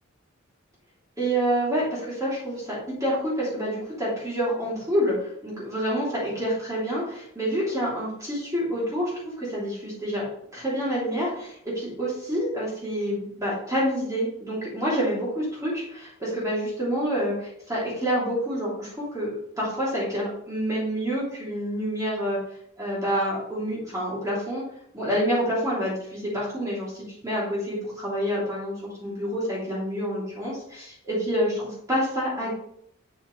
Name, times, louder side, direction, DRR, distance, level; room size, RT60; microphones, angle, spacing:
voice 1, 1.2-10.2 10.5-22.4 22.8-24.6 24.9-32.5, equal, 15° right, -7 dB, 3.0 m, -28 dB
7.9 x 6.9 x 3.3 m, 0.69 s
head